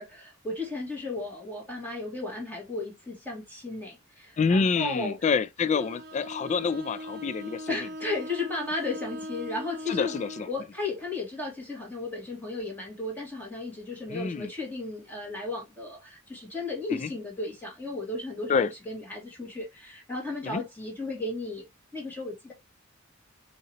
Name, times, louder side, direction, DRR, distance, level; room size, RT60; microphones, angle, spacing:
voice 1, 0.0-5.2 5.7-5.9 7.7-10.2 10.5-21.7 21.9-22.5, left 2 dB, 10° left, 2.3 m, -35 dB
voice 2, 4.4-7.8 9.9-10.5 14.1-14.5 16.9-17.1 18.5-18.7 20.4-20.6, left 5 dB, 35° left, 0.3 m, -27 dB
Bowed string instrument, 5.6-10.6, equal, 55° right, 0.8 m, -40 dB
5.5 x 2.9 x 2.9 m
head